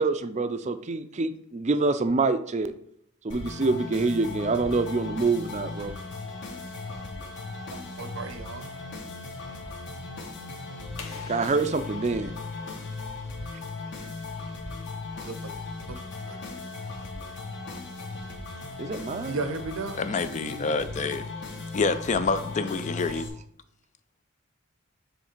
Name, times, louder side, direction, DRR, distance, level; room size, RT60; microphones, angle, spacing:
voice 1, 0.0-2.7 3.2-5.9 11.3-12.3 18.8-19.4, right 3 dB, 35° right, 10 dB, 0.5 m, -26 dB
sound 1, 3.3-23.3, left 3 dB, 60° left, 1.5 m, -37 dB
voice 2, 7.7-8.7 15.2-15.6 15.9-16.0 16.3-16.4 19.3-20.0, right 3 dB, 75° right, 9 dB, 0.8 m, -35 dB
sound 2, 11.0-13.6, left 4 dB, 80° left, 1.2 m, -47 dB
voice 3, 20.0-21.2 21.7-23.3, left 4 dB, 35° left, 11 dB, 0.4 m, -27 dB
7.2 x 3.2 x 4.4 m, 0.71 s
head